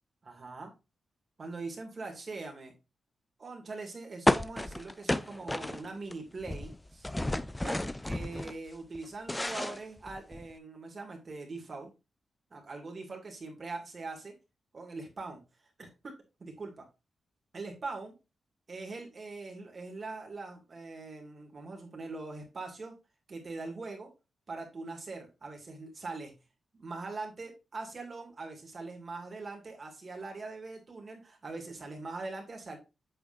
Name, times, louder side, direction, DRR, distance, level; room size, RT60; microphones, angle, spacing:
voice 1, 0.2-0.7 1.4-2.7 3.4-7.1 7.6-7.8 8.0-11.9 12.5-14.3 14.7-15.4 15.8-16.1 16.4-16.9 17.5-18.1 18.7-22.9 23.3-24.1 24.5-26.3 26.8-32.8, right 3 dB, 40° right, 2 dB, 2.3 m, -42 dB
sound 1, 4.3-6.1 6.4-8.5 8.9-10.5, left 1 dB, 10° left, 0.4 m, -31 dB
8.2 x 6.7 x 2.6 m, 0.26 s
wide cardioid pair, 130°, 0 cm